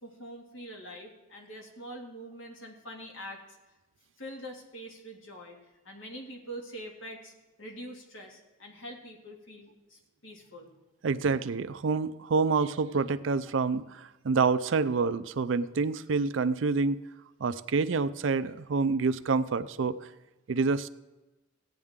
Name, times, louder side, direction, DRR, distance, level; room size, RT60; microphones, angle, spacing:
voice 1, 0.0-3.4 4.2-5.6 5.8-7.3 7.6-10.7, equal, 75° left, 1 dB, 2.1 m, -44 dB
voice 2, 11.0-17.0 17.4-20.0 20.5-20.9, right 4 dB, 70° right, 13 dB, 0.5 m, -27 dB
16.0 x 9.1 x 3.7 m, 1.1 s
head